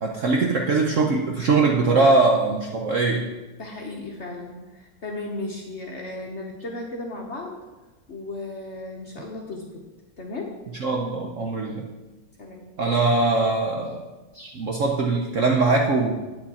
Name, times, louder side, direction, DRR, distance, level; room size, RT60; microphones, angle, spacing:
voice 1, 0.0-3.3 10.8-11.9 12.8-14.0 14.3-16.1, right 3 dB, 60° right, 0 dB, 0.8 m, -21 dB
voice 2, 3.6-7.6 8.1-9.9 10.2-10.6 12.4-12.7, left 2 dB, 50° left, 0 dB, 0.9 m, -35 dB
8.5 x 8.5 x 4.2 m, 1.2 s
omnidirectional pair, 2.1 m